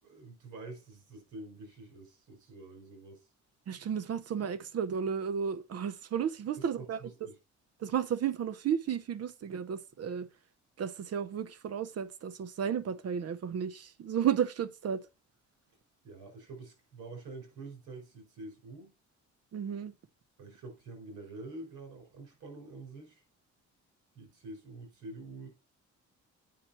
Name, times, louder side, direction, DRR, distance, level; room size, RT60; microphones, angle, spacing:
voice 1, 0.0-3.3 6.6-7.4 16.0-18.9 20.4-23.2 24.1-25.5, right 2 dB, 85° right, 5.0 m, -47 dB
voice 2, 3.7-7.0 7.8-10.3 10.8-15.1 19.5-19.9, right 8 dB, 55° right, 0.9 m, -33 dB
8.6 x 5.8 x 4.3 m
cardioid pair, 90°, 30 cm